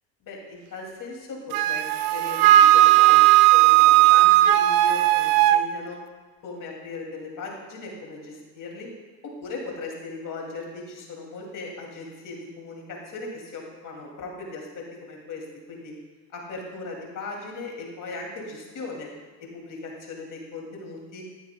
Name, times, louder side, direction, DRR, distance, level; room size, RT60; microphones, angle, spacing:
voice 1, 0.2-6.0 6.4-8.9 9.2-15.9 16.3-19.1 19.4-21.3, left 3 dB, 45° left, -1 dB, 2.6 m, -38 dB
Wind instrument woodwind instrument, 1.5-5.6, right 14 dB, 55° right, 0.5 m, -16 dB
9.9 x 9.1 x 2.3 m, 1.3 s
hypercardioid pair, 70°, 42 cm